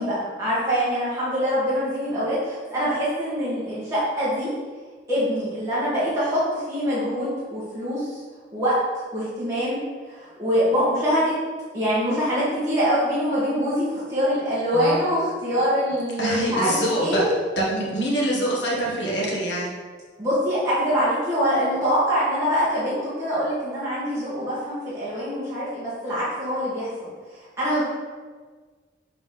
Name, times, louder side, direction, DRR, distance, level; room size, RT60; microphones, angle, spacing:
voice 1, 0.0-4.5 5.1-8.2 8.5-8.8 9.1-9.8 10.1-11.4 11.7-17.2 20.2-27.1 27.6-27.8, equal, 15° right, -11 dB, 1.6 m, -24 dB
voice 2, 14.7-15.0 16.2-19.7, right 1 dB, 75° left, -3 dB, 1.6 m, -25 dB
7.2 x 3.9 x 3.8 m, 1.5 s
head